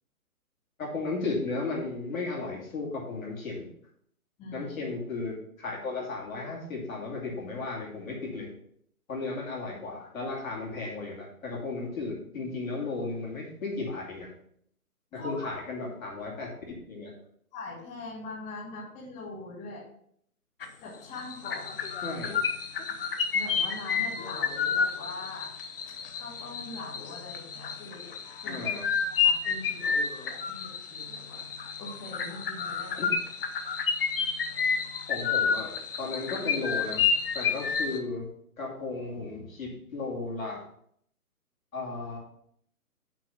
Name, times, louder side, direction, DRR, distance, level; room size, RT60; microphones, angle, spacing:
voice 1, 0.8-3.7 4.5-8.5 9.1-14.3 15.1-16.5 16.9-17.1 22.0-22.4 28.4-28.8 33.0-33.1 35.1-37.1 37.3-38.3 38.6-40.6 41.7-42.2, left 3 dB, 65° left, -3 dB, 2.8 m, -35 dB
voice 2, 15.1-15.5 17.5-19.9 20.8-21.9 23.3-25.5 26.1-28.1 28.4-28.6 29.2-33.1, left 3 dB, 15° left, -9 dB, 2.7 m, -42 dB
sound 1, 20.6-20.9 21.2-38.0, left 6 dB, 40° left, 0.7 m, -30 dB
5.9 x 4.8 x 5.8 m, 0.67 s
hypercardioid pair, 145°, 44 cm